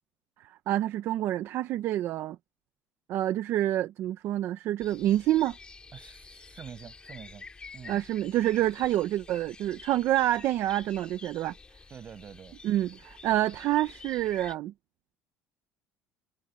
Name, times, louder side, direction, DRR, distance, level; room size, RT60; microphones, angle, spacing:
voice 1, 0.7-2.4 3.1-5.5 7.9-11.5 12.6-14.7, right 13 dB, 55° right, 0.9 m, -27 dB
sound 1, 4.8-14.6, left 4 dB, 20° left, 2.3 m, -49 dB
voice 2, 5.9-7.5 7.7-8.0 11.9-12.6, right 8 dB, 35° right, 7.0 m, -46 dB
cardioid pair, 145°, 5 cm